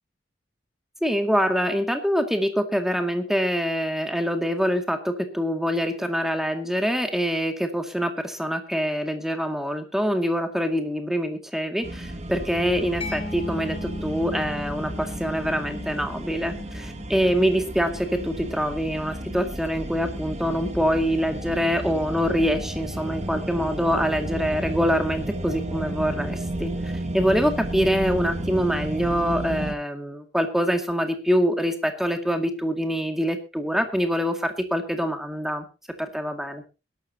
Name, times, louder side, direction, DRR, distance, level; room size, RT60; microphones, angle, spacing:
voice 1, 1.0-35.7 36.0-36.6, equal, ahead, 6 dB, 2.1 m, -25 dB
sound 1, 11.8-29.7, right 1 dB, 40° right, 2.0 m, -32 dB
Mallet percussion, 13.0-20.4, left 2 dB, 30° left, 4.9 m, -40 dB
21.5 x 12.5 x 2.8 m, 0.30 s
head